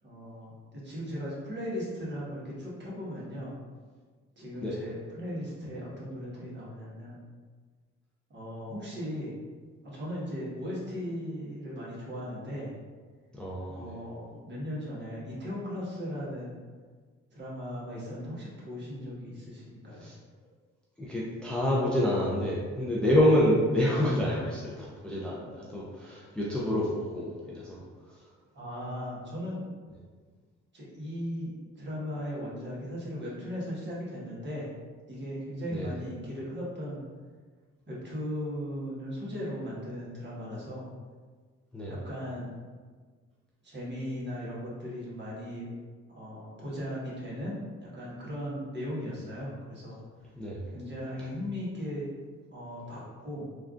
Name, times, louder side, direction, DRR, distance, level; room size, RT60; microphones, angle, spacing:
voice 1, 0.0-3.5 4.4-7.2 8.3-9.3 9.8-12.7 13.7-16.6 17.3-20.1 28.5-29.6 30.7-34.7 35.1-37.0 37.9-40.9 41.9-42.5 43.6-45.7 46.1-50.0 50.7-52.0 52.5-53.5, equal, 35° right, -7 dB, 1.3 m, -37 dB
voice 2, 13.3-14.0 19.9-20.2 21.0-28.3 35.7-35.9 41.7-42.0 50.4-50.6, left 1 dB, 5° left, -6 dB, 0.5 m, -28 dB
3.3 x 2.4 x 2.4 m, 1.5 s
cardioid pair, 90°, 30 cm